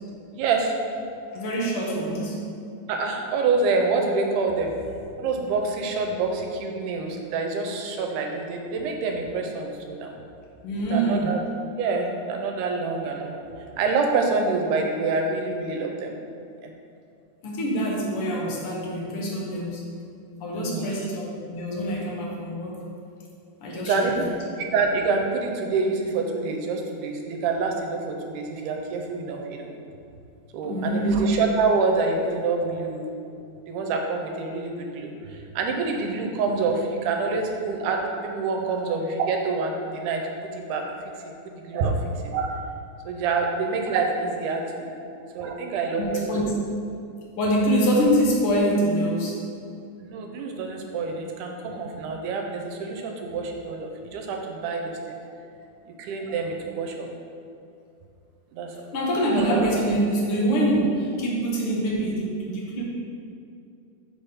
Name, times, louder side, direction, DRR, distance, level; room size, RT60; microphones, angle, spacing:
voice 1, 0.3-0.7 2.9-4.7 5.2-10.1 10.9-11.4 11.8-13.4 13.8-16.2 16.6-16.7 20.5-21.0 23.7-24.3 24.6-29.7 30.5-33.1 33.7-40.8 41.5-42.6 43.1-44.9 45.4-46.4 50.0-55.2 56.0-57.1 58.5-58.7 59.3-59.7, right 4 dB, 80° right, 2 dB, 2.1 m, -27 dB
voice 2, 1.2-2.4 10.6-11.3 17.4-19.9 20.4-22.8 23.6-24.2 30.6-31.2 38.6-38.8 41.1-41.3 44.9-45.0 46.0-46.5 47.4-49.4 55.6-55.7 58.9-62.8, right 1 dB, 60° left, -3 dB, 1.5 m, -25 dB
6.4 x 3.4 x 5.5 m, 2.6 s
omnidirectional pair, 3.6 m